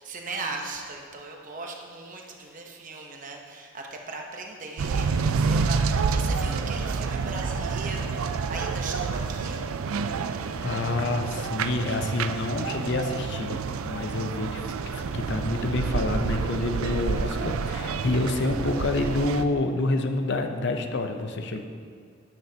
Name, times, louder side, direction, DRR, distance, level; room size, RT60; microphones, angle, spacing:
voice 1, 0.0-9.6, right 3 dB, 40° right, 1 dB, 0.9 m, -38 dB
sound 1, 4.8-19.4, right 5 dB, 80° right, 0.4 m, -28 dB
voice 2, 10.6-21.6, left 2 dB, 55° left, 5 dB, 0.6 m, -28 dB
10.5 x 9.3 x 2.8 m, 2.2 s
head